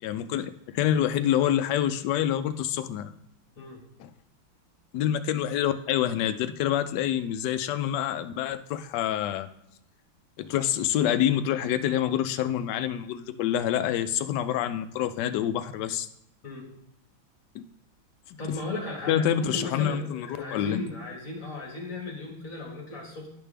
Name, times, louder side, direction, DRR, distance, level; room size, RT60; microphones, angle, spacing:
voice 1, 0.0-3.1 4.0-4.1 4.9-9.5 10.4-16.1 17.5-17.7 18.3-18.4 19.1-20.8, left 10 dB, 75° left, 10 dB, 1.1 m, -27 dB
voice 2, 18.4-23.3, left 2 dB, 45° left, -1 dB, 2.1 m, -36 dB
10.5 x 5.2 x 3.4 m, 0.78 s
omnidirectional pair, 2.1 m